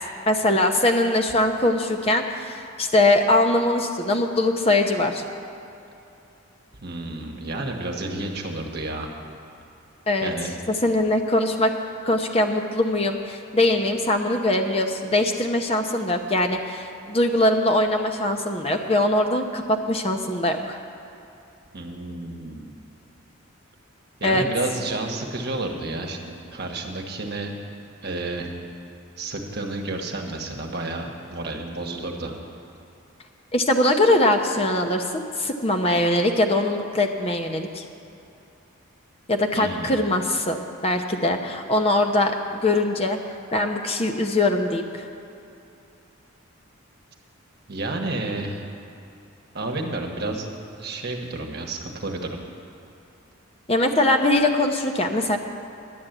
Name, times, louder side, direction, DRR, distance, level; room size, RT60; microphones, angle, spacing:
voice 1, 0.3-5.2 10.1-10.3 10.7-11.7 12.0-20.8 24.2-24.4 33.5-37.8 39.3-43.2 43.5-45.1 53.7-55.4, left 1 dB, 25° left, 4 dB, 0.7 m, -22 dB
voice 2, 6.8-9.1 10.2-10.5 21.7-22.8 24.2-27.5 28.0-28.5 29.2-32.4 39.5-40.1 47.7-48.6 49.5-50.5 50.8-52.4, right 2 dB, 50° right, 2 dB, 1.2 m, -31 dB
11.0 x 8.8 x 7.8 m, 2.7 s
head